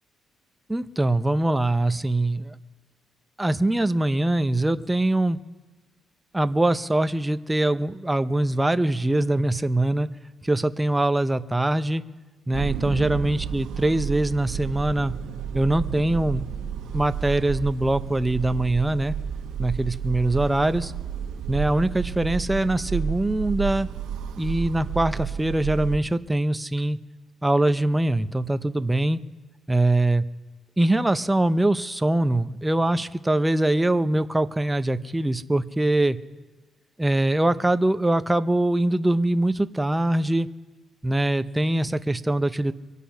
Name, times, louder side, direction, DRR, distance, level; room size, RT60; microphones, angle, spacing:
voice 1, 0.7-2.5 3.4-5.4 6.3-10.1 10.4-12.0 12.5-15.1 15.5-16.5 16.9-19.2 19.6-20.9 21.5-23.9 24.4-27.0 27.4-29.2 29.7-30.2 30.8-36.2 37.0-40.5 41.0-42.7, right 1 dB, 10° right, 11 dB, 0.6 m, -23 dB
sound 1, 12.5-26.0, right 8 dB, 90° right, 1.4 m, -31 dB
24.0 x 8.3 x 5.7 m, 1.3 s
cardioid pair, 90°, 0 cm